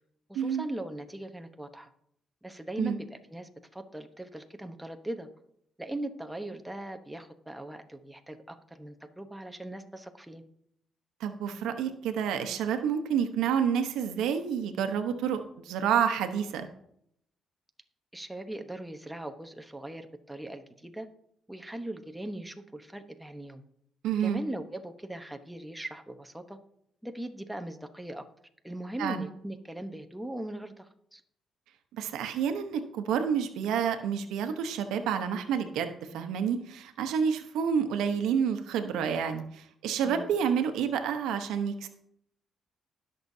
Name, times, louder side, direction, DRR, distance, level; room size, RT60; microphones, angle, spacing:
voice 1, 0.3-1.9 2.4-5.3 5.8-10.4 18.1-21.1 21.5-23.6 24.2-26.6 27.0-28.2 28.6-31.2 40.0-40.3, right 1 dB, 5° right, 6 dB, 1.0 m, -40 dB
voice 2, 11.2-16.7 24.0-24.4 29.0-29.3 31.9-41.9, right 7 dB, 90° right, 7 dB, 0.9 m, -29 dB
19.5 x 6.6 x 2.7 m, 0.72 s
cardioid pair, 90°, 0 cm